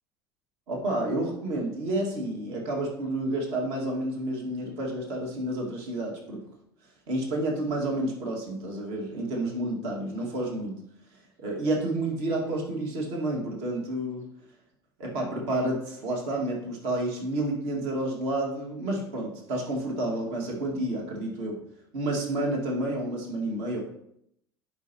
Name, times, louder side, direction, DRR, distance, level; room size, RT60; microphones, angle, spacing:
voice 1, 0.7-6.5 7.1-10.8 11.4-14.2 15.0-21.6 21.9-23.8, right 1 dB, 60° right, -1 dB, 2.1 m, -30 dB
10.5 x 5.1 x 3.0 m, 0.74 s
hypercardioid pair, 70°, 12 cm